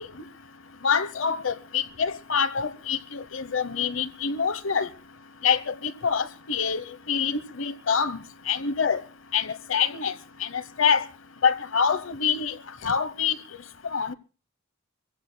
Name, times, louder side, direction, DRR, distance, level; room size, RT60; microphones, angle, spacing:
voice 1, 0.8-4.9 5.4-9.0 9.3-10.1 10.4-11.1 11.4-12.6 12.8-13.3 13.9-14.1, left 6 dB, 75° left, 0.9 m, -26 dB
25.0 x 16.5 x 2.2 m
head